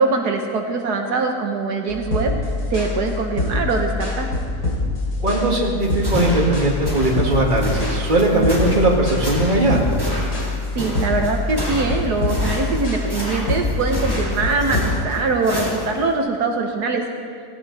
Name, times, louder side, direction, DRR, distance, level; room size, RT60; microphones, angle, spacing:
voice 1, 0.0-2.3 2.7-4.3 10.7-17.0, right 3 dB, 75° right, 3 dB, 1.6 m, -22 dB
sound 1, 1.9-14.9, left 2 dB, 85° left, 3.7 m, -25 dB
voice 2, 5.2-9.9, right 2 dB, 30° right, -2 dB, 2.3 m, -19 dB
sound 2, 5.8-16.1, equal, 15° left, 3.8 m, -29 dB
17.5 x 17.0 x 4.2 m, 2.1 s
omnidirectional pair, 1.7 m